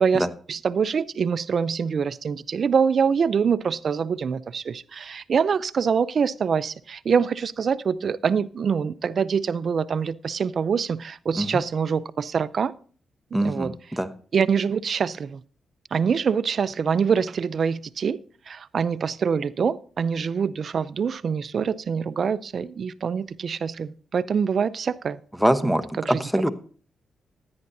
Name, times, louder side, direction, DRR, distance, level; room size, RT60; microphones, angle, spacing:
voice 1, 0.0-12.7 13.4-13.7 14.3-15.4 15.9-18.2 18.5-25.2 25.6-26.2, right 6 dB, 60° right, 0.5 m, -25 dB
voice 2, 13.3-14.1 25.4-26.5, right 1 dB, ahead, 1.0 m, -23 dB
16.0 x 9.7 x 2.7 m
cardioid pair, 65°, 0 cm